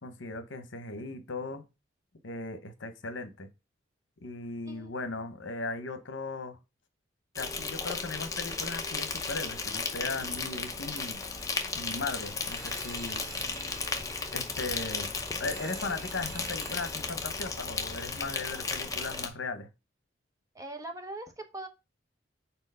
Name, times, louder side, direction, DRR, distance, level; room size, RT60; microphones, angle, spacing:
voice 1, 0.0-1.6 2.2-3.5 4.2-6.6 7.4-11.2 11.7-13.2 14.3-15.1 15.4-19.7, left 3 dB, 75° left, 9 dB, 0.9 m, -37 dB
Insect, 7.4-19.3, left 4 dB, 20° left, 0.7 m, -35 dB
sound 1, 10.8-16.9, right 6 dB, 70° right, 1.2 m, -50 dB
voice 2, 20.5-21.7, right 2 dB, 20° right, 5 dB, 0.8 m, -41 dB
4.5 x 4.0 x 5.4 m, 0.26 s
head